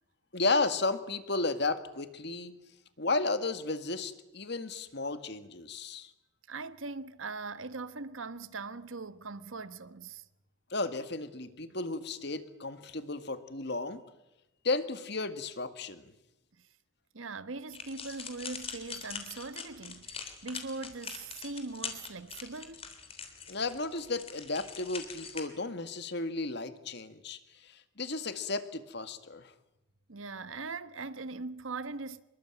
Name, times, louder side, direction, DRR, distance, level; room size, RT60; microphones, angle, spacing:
voice 1, 0.3-2.5 3.0-6.1 10.7-14.0 14.6-16.1 23.5-29.5, left 3 dB, 55° left, 1.9 m, -33 dB
voice 2, 6.5-10.2 17.1-22.9 30.1-32.2, right 3 dB, 80° right, 1.3 m, -41 dB
sound 1, 17.7-25.4, left 6 dB, 30° left, 3.5 m, -43 dB
26.0 x 22.5 x 9.0 m
head